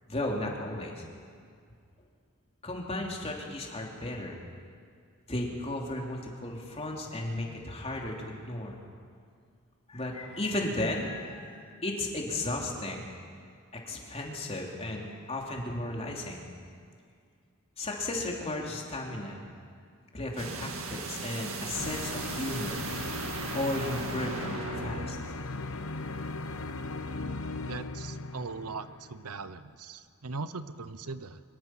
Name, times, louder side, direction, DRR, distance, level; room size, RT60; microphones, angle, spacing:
voice 1, 0.1-1.0 2.6-4.4 5.3-8.7 9.9-13.1 13.7-16.4 17.8-19.4 20.1-22.8 23.5-25.4, left 1 dB, 30° left, -1 dB, 3.1 m, -35 dB
sound 1, 20.4-25.2, right 3 dB, 65° right, 2.1 m, -37 dB
sound 2, 21.7-29.3, left 3 dB, 70° left, 1.0 m, -38 dB
voice 2, 27.7-31.4, right 4 dB, 85° right, 13 dB, 0.9 m, -40 dB
24.0 x 22.5 x 5.9 m, 2.2 s
head